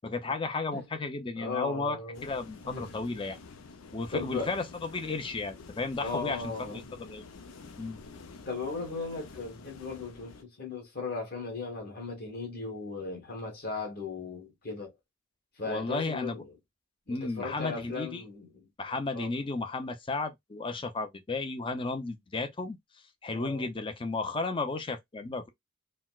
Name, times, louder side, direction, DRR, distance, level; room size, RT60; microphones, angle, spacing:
voice 1, 0.0-3.4 3.9-6.8 7.1-7.3 7.8-8.0 15.6-16.4 17.1-18.2 18.8-22.8 23.2-25.5, left 3 dB, 25° left, 0.5 m, -33 dB
voice 2, 1.4-2.3 2.6-2.9 4.1-4.5 6.0-6.8 8.5-14.9 15.6-16.4 17.1-18.7 19.1-19.3 23.3-23.7, left 4 dB, 50° left, 1.4 m, -37 dB
sound 1, 2.1-10.4, left 4 dB, 85° left, 0.6 m, -49 dB
4.0 x 2.1 x 2.3 m
head